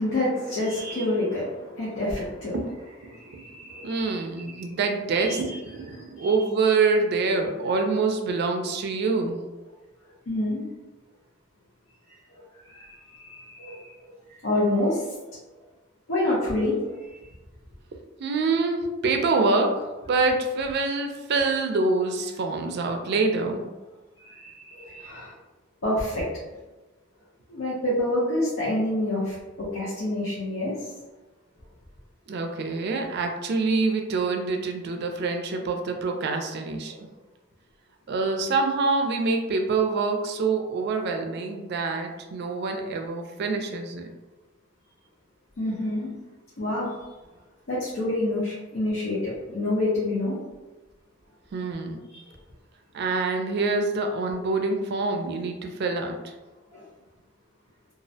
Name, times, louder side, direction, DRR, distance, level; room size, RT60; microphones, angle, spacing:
voice 1, 0.0-2.5 3.1-4.7 5.1-5.6 6.2-6.3 10.3-10.6 12.3-15.0 16.1-16.9 24.2-25.3 25.8-26.2 27.5-30.9 45.6-46.1 46.6-46.9 47.7-50.4 52.1-52.3 56.7-56.8, left 1 dB, 90° left, -7 dB, 0.7 m, -28 dB
voice 2, 3.8-9.4 18.2-23.6 32.3-37.0 38.1-44.1 51.5-52.0 52.9-56.3, right 3 dB, 55° right, 4 dB, 0.3 m, -26 dB
2.3 x 2.0 x 2.6 m, 1.1 s
head